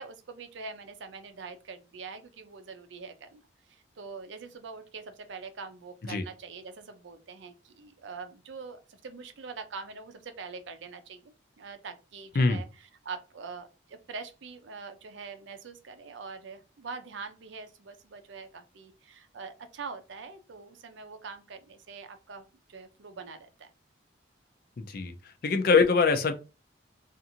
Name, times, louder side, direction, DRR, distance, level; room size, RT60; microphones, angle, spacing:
voice 1, 0.0-3.4 3.7-12.7 13.0-23.7, right 4 dB, 75° right, 0.5 m, -44 dB
voice 2, 24.8-25.1 25.4-26.3, left 4 dB, 50° left, 0.4 m, -23 dB
2.5 x 2.5 x 2.7 m
head